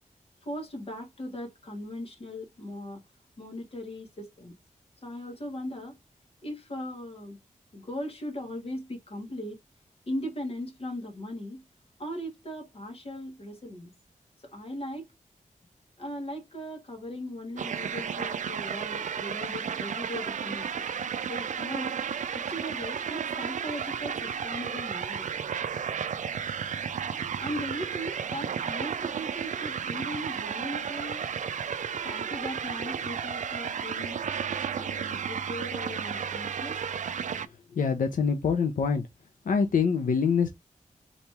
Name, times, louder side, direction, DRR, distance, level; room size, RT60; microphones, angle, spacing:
voice 1, 0.4-3.0 3.4-4.5 5.0-5.9 6.4-7.4 7.7-9.6 10.1-11.6 12.0-13.9 14.4-15.1 16.0-20.7 21.3-22.0 22.3-25.3 27.4-31.3 32.0-34.2 34.8-36.8, equal, 45° left, 1.8 m, -38 dB
sound 1, 17.6-37.5, right 7 dB, 65° right, 0.4 m, -33 dB
voice 2, 37.8-39.0 39.5-40.5, left 6 dB, 85° left, 0.6 m, -25 dB
4.1 x 3.0 x 3.4 m
wide cardioid pair, 155°, 14 cm